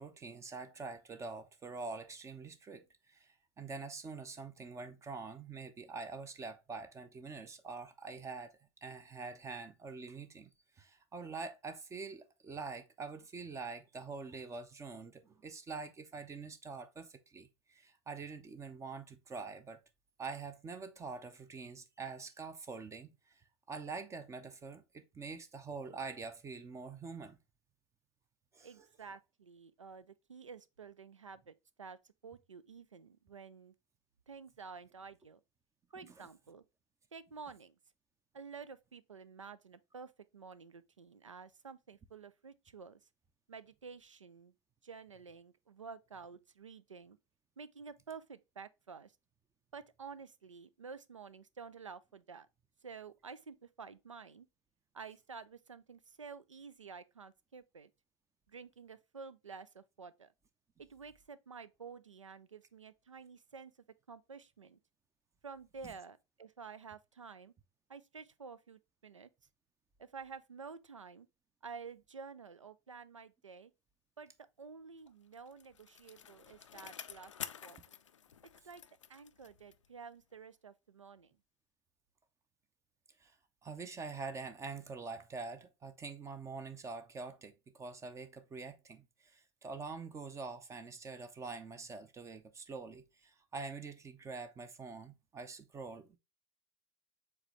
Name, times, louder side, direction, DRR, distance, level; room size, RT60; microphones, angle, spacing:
voice 1, 0.0-3.3 3.6-10.5 10.8-19.8 20.2-23.4 23.7-27.4 28.5-28.9 36.2-36.3 83.2-83.3 83.6-96.2, right 4 dB, 20° right, 0.6 m, -45 dB
voice 2, 28.6-33.7 34.3-35.4 35.9-36.6 37.1-37.8 38.3-43.0 43.5-44.5 44.8-47.2 47.6-49.1 49.7-52.5 52.8-54.5 54.9-57.9 58.5-60.3 60.8-63.7 64.1-64.8 65.4-67.5 67.9-69.3 70.0-71.3 71.6-73.7 74.2-74.3 74.6-77.3 77.6-77.8 78.6-78.8 79.1-81.4, right 5 dB, 90° right, 0.4 m, -51 dB
Bicycle, 75.1-80.0 80.3-80.4, left 8 dB, 80° left, 0.4 m, -50 dB
4.8 x 3.5 x 3.1 m
figure-of-eight pair, 85°, 16 cm